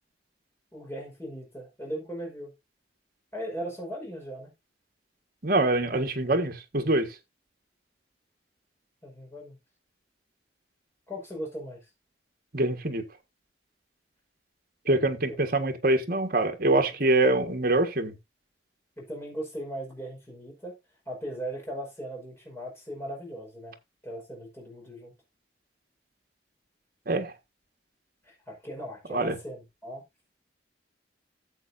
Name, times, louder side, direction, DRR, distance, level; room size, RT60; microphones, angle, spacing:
voice 1, 0.7-2.5 3.3-4.5 9.0-9.6 11.1-11.8 14.9-15.4 17.0-17.6 19.0-20.7 21.1-23.8 24.0-25.1 28.3-30.0, equal, 15° left, 5.3 m, -38 dB
voice 2, 5.4-7.1 12.5-13.0 14.9-18.1 27.1-27.3 29.1-29.3, right 2 dB, 50° right, 1.6 m, -24 dB
13.5 x 7.8 x 2.7 m
head